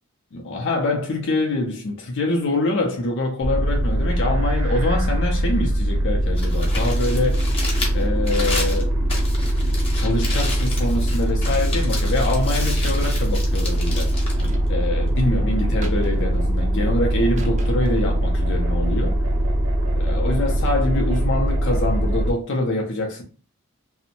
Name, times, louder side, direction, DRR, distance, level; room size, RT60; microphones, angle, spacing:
voice 1, 0.3-7.4 7.9-8.9 9.9-14.1 14.7-19.2 19.9-23.2, left 2 dB, 55° left, 0.5 m, -25 dB
sound 1, 3.4-22.3, right 1 dB, 70° right, 0.7 m, -22 dB
Crumpling crinkling, 6.2-15.3, left 2 dB, 25° left, 0.8 m, -33 dB
sound 2, 12.8-13.3 14.4-15.0 15.8-16.4 17.3-18.0, right 2 dB, 30° right, 0.5 m, -38 dB
2.5 x 2.0 x 2.7 m
head